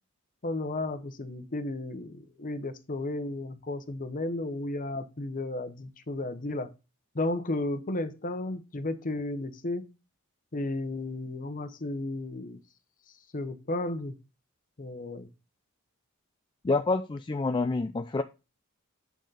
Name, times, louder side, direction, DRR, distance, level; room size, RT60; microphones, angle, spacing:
voice 1, 0.4-6.7 7.1-9.9 10.5-12.6 13.3-14.2 14.8-15.3, left 2 dB, 40° left, 10 dB, 0.9 m, -33 dB
voice 2, 16.6-18.2, left 3 dB, 20° left, 8 dB, 0.4 m, -27 dB
8.2 x 6.5 x 3.9 m, 0.30 s
head